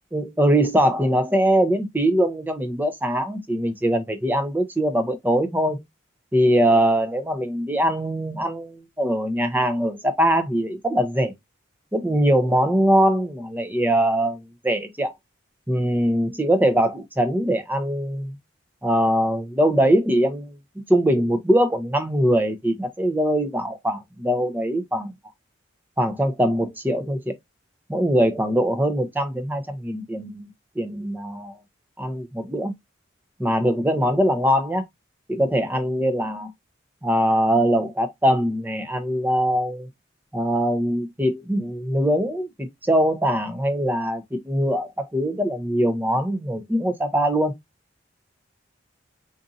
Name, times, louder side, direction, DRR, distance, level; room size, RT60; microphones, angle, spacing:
voice 1, 0.1-5.8 6.3-11.3 11.9-15.1 15.7-18.3 18.8-20.6 20.9-25.1 26.0-27.3 27.9-30.5 30.8-31.5 32.0-32.7 33.4-34.8 35.3-36.5 37.0-39.9 40.3-47.5, equal, 10° right, 0.6 m, -22 dB
3.9 x 2.6 x 2.4 m
head